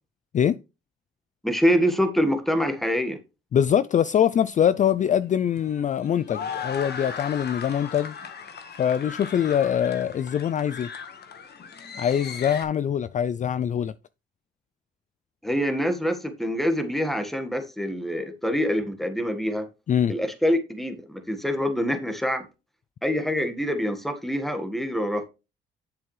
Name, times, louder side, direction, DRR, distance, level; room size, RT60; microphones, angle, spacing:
voice 1, 1.4-3.2 15.4-19.7 20.1-22.4 23.0-25.3, equal, ahead, 1.6 m, -25 dB
voice 2, 3.5-8.2 8.8-10.9 12.0-13.9 19.9-20.1, left 9 dB, 40° left, 0.4 m, -23 dB
sound 1, 4.7-12.6, left 6 dB, 55° left, 1.5 m, -38 dB
8.8 x 7.3 x 3.3 m
cardioid pair, 90°, 20 cm